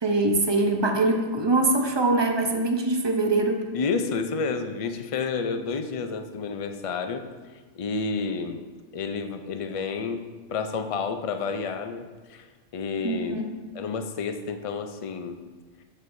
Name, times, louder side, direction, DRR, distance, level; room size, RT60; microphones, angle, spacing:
voice 1, 0.0-3.6 13.0-13.6, right 2 dB, 30° right, 4 dB, 0.6 m, -23 dB
voice 2, 3.7-7.3 7.7-8.6 8.9-10.2 10.5-12.4 12.7-13.4 13.7-15.4, left 4 dB, 50° left, 7 dB, 0.4 m, -30 dB
12.5 x 6.4 x 2.6 m, 1.3 s
omnidirectional pair, 1.2 m